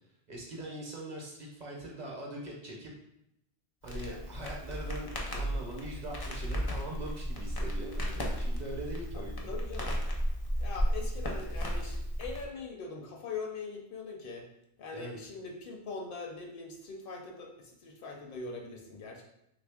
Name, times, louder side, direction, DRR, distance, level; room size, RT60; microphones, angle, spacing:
voice 1, 0.3-2.9 3.8-9.5 14.9-15.2, right 1 dB, 50° right, -2 dB, 0.7 m, -42 dB
Crackle, 3.8-12.5, equal, 35° left, 0.4 m, -34 dB
voice 2, 9.1-10.0 10.6-14.5 14.8-19.2, left 4 dB, 65° left, 1 dB, 0.7 m, -42 dB
3.1 x 2.5 x 3.4 m, 0.82 s
omnidirectional pair, 1.0 m